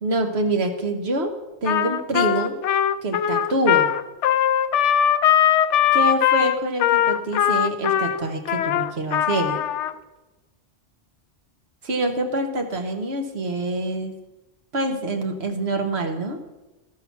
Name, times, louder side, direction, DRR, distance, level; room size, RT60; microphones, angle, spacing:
voice 1, 0.0-1.3 1.6-2.6 3.0-3.9 5.9-9.6 11.8-14.1 14.7-16.4, right 2 dB, 65° right, 4 dB, 1.4 m, -25 dB
Trumpet, 1.6-9.9, left 10 dB, 85° left, 0.9 m, -20 dB
13.0 x 5.8 x 5.9 m, 1.1 s
omnidirectional pair, 1.2 m